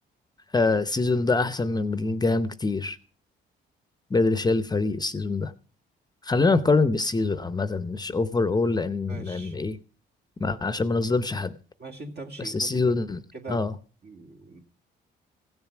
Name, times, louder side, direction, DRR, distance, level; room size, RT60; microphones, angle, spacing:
voice 1, 0.5-3.0 4.1-5.5 6.2-9.8 10.4-11.5 12.4-13.2 13.5-13.7, left 3 dB, 20° left, 0.7 m, -24 dB
voice 2, 9.1-9.6 11.8-13.0 13.3-13.7 14.0-14.6, right 3 dB, 55° right, 2.2 m, -41 dB
16.0 x 7.3 x 5.9 m
cardioid pair, 90°, 20 cm